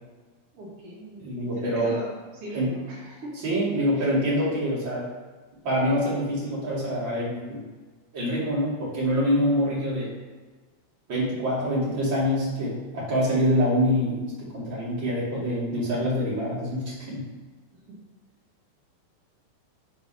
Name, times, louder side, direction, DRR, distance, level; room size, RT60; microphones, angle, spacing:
voice 1, 0.5-1.3 1.6-3.4 4.0-4.1 17.7-17.9, right 1 dB, 90° right, -6 dB, 1.2 m, -39 dB
voice 2, 1.2-1.9 2.5-2.7 3.4-5.0 5.6-7.6 8.1-10.1 11.1-17.2, equal, 30° right, -7 dB, 2.3 m, -25 dB
8.5 x 4.6 x 5.5 m, 1.3 s
omnidirectional pair, 5.8 m